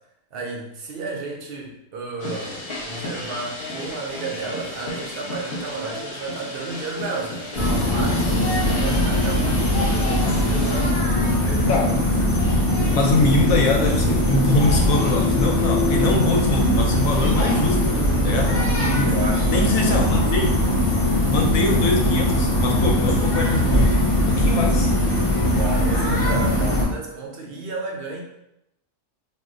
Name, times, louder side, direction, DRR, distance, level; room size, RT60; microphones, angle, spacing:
voice 1, 0.3-11.0 11.3-12.1 19.0-20.4 25.5-28.2, right 4 dB, 65° right, 0 dB, 0.6 m, -33 dB
sound 1, 2.2-10.9, left 1 dB, 50° left, 1.0 m, -34 dB
sound 2, 7.5-26.8, left 1 dB, 35° left, 0.6 m, -20 dB
voice 2, 12.9-18.5 18.9-19.1 19.5-20.5 21.3-23.9 24.3-24.9, left 2 dB, 75° left, 1 dB, 1.0 m, -23 dB
2.5 x 2.1 x 3.6 m, 0.84 s
omnidirectional pair, 1.4 m